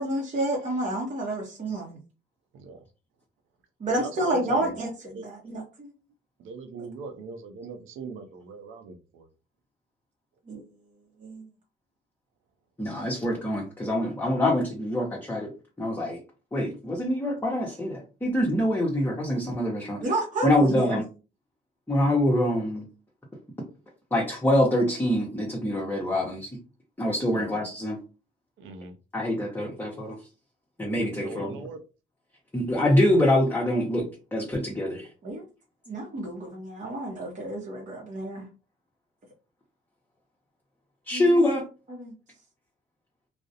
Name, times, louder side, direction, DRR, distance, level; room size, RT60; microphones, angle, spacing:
voice 1, 0.0-2.0 3.8-5.9 10.5-10.6 11.2-11.4 20.0-21.0 35.2-35.4 35.9-38.4 41.1-41.5 41.9-42.1, right 1 dB, 40° right, -2 dB, 0.7 m, -30 dB
voice 2, 3.9-4.7 5.1-5.3 6.4-9.3 27.3-27.5 28.6-28.9 31.2-31.8, right 4 dB, 80° right, 7 dB, 0.5 m, -40 dB
voice 3, 12.8-15.5 15.8-16.2 16.5-20.0 20.4-21.0 21.9-22.9 24.1-26.5 27.0-28.0 29.1-30.2 30.8-31.6 32.5-35.1 41.1-41.6, left 1 dB, 10° left, -3 dB, 0.7 m, -25 dB
2.4 x 2.0 x 2.7 m, 0.33 s
cardioid pair, 90°, 20 cm